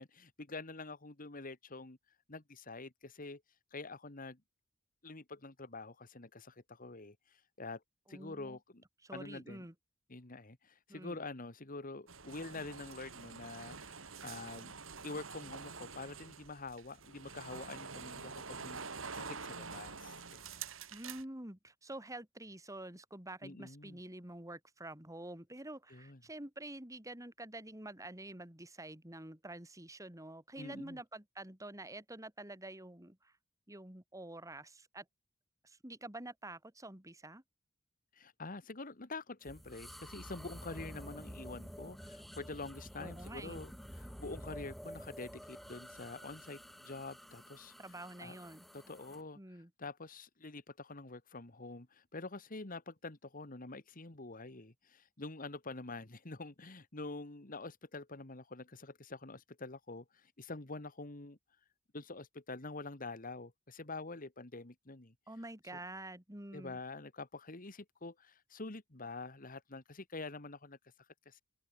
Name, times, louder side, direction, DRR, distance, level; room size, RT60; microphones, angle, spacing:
voice 1, 0.0-2.0 2.3-3.4 3.7-4.4 5.0-7.8 8.1-8.8 9.1-9.7 10.1-14.7 15.0-18.8 19.1-20.7 23.4-24.0 25.9-26.2 30.6-31.0 38.1-47.7 48.2-48.4 48.7-49.4 49.8-61.4 61.9-65.1 66.5-70.8 71.3-71.4, left 3 dB, 45° left, 1.8 m, -46 dB
voice 2, 8.1-8.6 9.0-9.7 10.9-11.2 20.9-33.3 33.7-35.1 35.6-37.4 43.0-43.6 47.8-48.7 49.4-49.7 65.3-66.8, right 1 dB, 15° right, 3.5 m, -48 dB
sound 1, 12.1-21.2, right 5 dB, 90° right, 3.9 m, -47 dB
sound 2, 39.4-49.2, equal, ahead, 6.9 m, -50 dB
open air
head